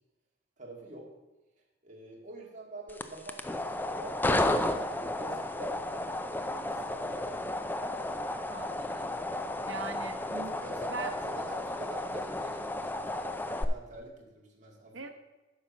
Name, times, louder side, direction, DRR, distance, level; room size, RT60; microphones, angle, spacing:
voice 1, 0.6-1.1 1.8-4.2 4.6-7.4 10.3-14.9, right 2 dB, 40° right, -1 dB, 2.0 m, -46 dB
sound 1, 2.9-13.6, left 1 dB, 10° left, 0.4 m, -33 dB
voice 2, 8.5-9.1 9.6-10.6 10.9-11.1 14.9-15.1, right 3 dB, 80° right, 6 dB, 1.0 m, -41 dB
9.5 x 5.7 x 5.9 m, 1.1 s
head